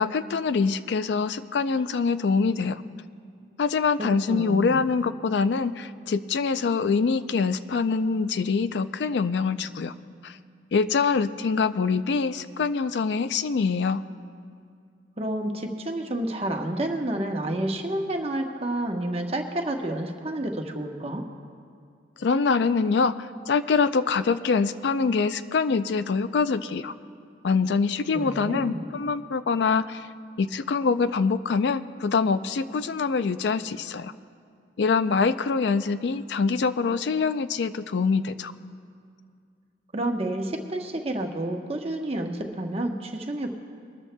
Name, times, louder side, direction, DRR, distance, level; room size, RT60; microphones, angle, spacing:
voice 1, 0.0-2.8 3.6-9.9 10.2-10.4 10.7-14.0 22.2-26.9 27.4-30.1 30.4-34.1 34.8-38.5, left 5 dB, 75° left, 13 dB, 0.4 m, -24 dB
voice 2, 4.0-4.8 15.2-21.2 28.2-28.9 39.9-43.5, right 1 dB, 30° right, 3 dB, 1.0 m, -29 dB
22.5 x 13.5 x 2.2 m, 2.3 s
head